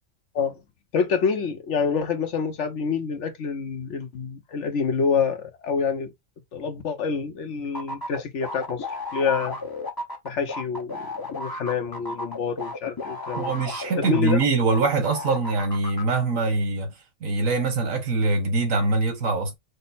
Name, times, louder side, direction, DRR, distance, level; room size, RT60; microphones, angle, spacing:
voice 1, 0.9-6.1 6.5-8.9 9.1-9.6 10.2-11.0 11.3-13.5 14.1-14.4, left 6 dB, 65° left, 1.1 m, -27 dB
sound 1, 7.7-14.8 15.1-16.0, left 2 dB, 20° left, 0.7 m, -33 dB
voice 2, 13.3-16.9 17.2-19.5, right 3 dB, 80° right, 1.6 m, -23 dB
5.2 x 2.0 x 4.1 m
omnidirectional pair, 1.4 m